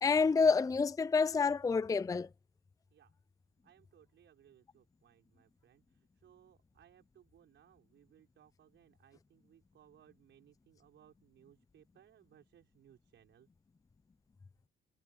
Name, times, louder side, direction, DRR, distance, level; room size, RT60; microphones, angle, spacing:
voice 1, 0.0-2.3, left 5 dB, 15° left, 0.4 m, -28 dB
voice 2, 3.6-13.5, right 10 dB, 70° right, 5.9 m, -64 dB
cardioid pair, 90°, 20 cm